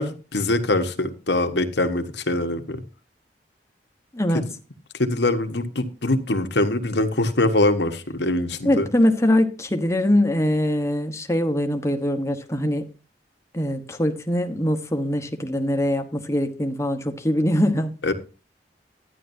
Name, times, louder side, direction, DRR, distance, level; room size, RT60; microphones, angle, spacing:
voice 1, 0.0-2.8 4.3-4.4 5.0-8.9 18.0-18.1, left 2 dB, 75° left, 1.3 m, -23 dB
voice 2, 8.6-12.8 13.5-17.9, left 1 dB, 15° left, 1.2 m, -22 dB
12.5 x 10.0 x 2.7 m
head